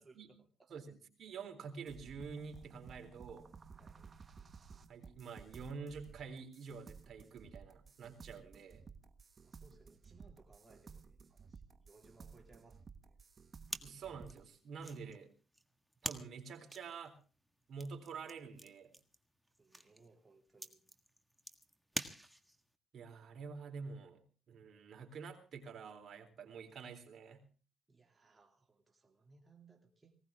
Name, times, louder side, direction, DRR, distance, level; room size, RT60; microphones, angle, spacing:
voice 1, 0.0-0.7 3.8-4.1 9.4-13.2 19.6-20.8 27.9-30.1, right 3 dB, 20° right, 2 dB, 2.7 m, -65 dB
voice 2, 0.7-3.5 4.9-8.9 13.8-15.3 16.0-17.2 17.7-18.9 22.9-27.5, right 5 dB, 55° right, 4 dB, 3.7 m, -48 dB
sound 1, 1.9-14.4, right 5 dB, 40° right, 1.3 m, -56 dB
sound 2, 13.7-22.7, right 1 dB, 5° right, 1.7 m, -48 dB
19.5 x 18.0 x 3.6 m, 0.38 s
cardioid pair, 90°, 0 cm